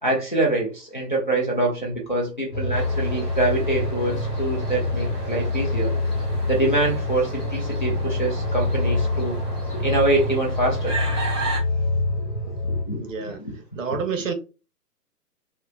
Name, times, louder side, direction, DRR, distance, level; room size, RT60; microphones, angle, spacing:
voice 1, 0.0-5.9 6.5-9.4 9.7-11.0 12.2-12.3 12.6-13.0 13.4-13.5, right 2 dB, 35° left, 0.4 m, -25 dB
sound 1, 2.5-12.8, left 2 dB, 85° left, 0.8 m, -26 dB
sound 2, 2.7-11.6, right 3 dB, ahead, 0.7 m, -35 dB
voice 2, 12.9-13.4 13.8-14.3, right 5 dB, 50° right, 0.6 m, -28 dB
3.0 x 2.1 x 2.3 m
figure-of-eight pair, 130°, 48 cm